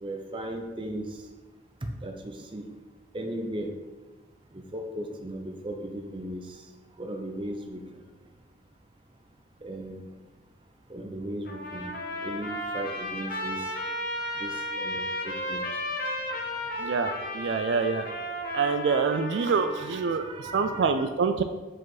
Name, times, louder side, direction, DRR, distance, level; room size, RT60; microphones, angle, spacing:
voice 1, 0.0-1.1 1.8-2.7 3.1-3.7 4.5-6.4 7.0-7.8 9.6-10.1 10.9-11.9 12.2-13.6 14.4-15.8 20.2-21.1, right 1 dB, 25° right, 3 dB, 0.6 m, -36 dB
Trumpet, 11.5-20.3, left 1 dB, 50° left, 0.9 m, -34 dB
voice 2, 16.8-17.1 17.3-18.0 18.5-20.2 20.5-21.4, right 5 dB, 75° right, 8 dB, 0.3 m, -25 dB
4.9 x 4.8 x 4.0 m, 1.3 s
head